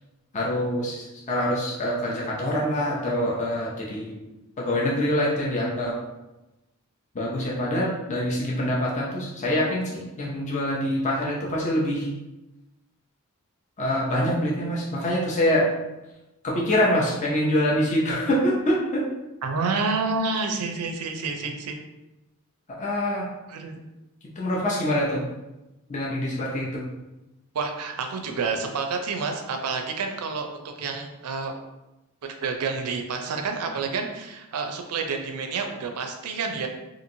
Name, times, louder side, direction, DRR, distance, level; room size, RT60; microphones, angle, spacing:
voice 1, 0.3-4.2 4.6-6.0 7.1-12.1 13.8-15.7 16.4-19.1 22.8-23.3 24.2-25.2 25.9-26.9, equal, 35° left, -4 dB, 0.5 m, -25 dB
voice 2, 19.4-21.8 23.5-23.8 27.5-31.5 32.2-36.7, right 4 dB, 85° right, 4 dB, 0.4 m, -29 dB
2.9 x 2.6 x 2.6 m, 0.99 s
head